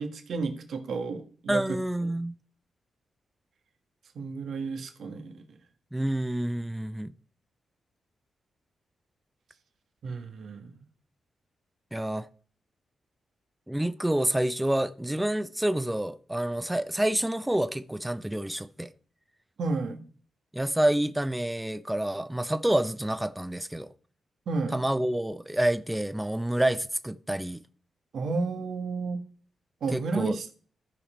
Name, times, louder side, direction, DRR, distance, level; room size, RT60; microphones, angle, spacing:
voice 1, 0.0-1.6 4.1-5.4 10.0-10.8 19.6-20.0 24.5-24.8 28.1-29.2 29.8-30.5, right 4 dB, 70° right, 1.5 m, -32 dB
voice 2, 1.5-2.3 5.9-7.1 11.9-12.3 13.7-18.9 20.5-23.9 24.7-27.6 29.9-30.4, right 1 dB, 10° right, 0.7 m, -28 dB
13.5 x 5.0 x 4.4 m
supercardioid pair, 50°, 0 cm